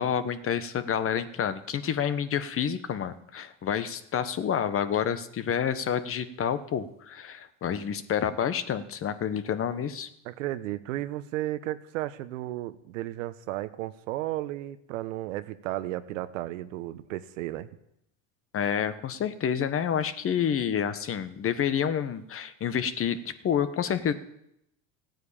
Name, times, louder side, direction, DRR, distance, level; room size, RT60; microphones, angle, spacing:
voice 1, 0.0-10.1 18.5-24.1, left 8 dB, 35° left, 12 dB, 1.2 m, -29 dB
voice 2, 10.2-17.7, right 15 dB, 80° right, 12 dB, 1.1 m, -34 dB
15.0 x 9.4 x 8.7 m, 0.79 s
supercardioid pair, 100°, 38 cm